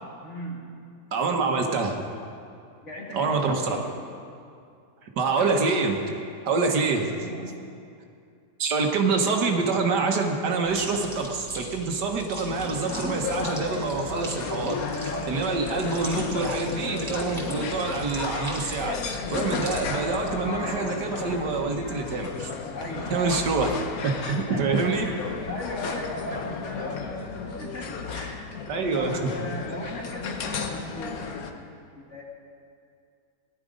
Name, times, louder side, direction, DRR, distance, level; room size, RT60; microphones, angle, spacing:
voice 1, 0.2-0.7 2.8-3.9 7.2-7.6 15.1-15.4 22.7-23.7 24.2-28.5 28.9-31.7 32.0-32.2, equal, 45° left, -2 dB, 2.3 m, -37 dB
voice 2, 1.1-2.0 3.1-3.8 5.0-6.0 6.4-7.3 8.6-14.8 15.0-22.5 23.1-23.7 24.0-24.1 24.5-25.1 28.7-29.3, right 4 dB, 75° right, 3 dB, 1.7 m, -26 dB
sound 1, 10.7-20.5, right 2 dB, 20° right, 2.9 m, -41 dB
sound 2, 12.5-31.5, left 5 dB, 60° left, 1.3 m, -33 dB
17.5 x 11.5 x 5.1 m, 2.4 s
omnidirectional pair, 1.8 m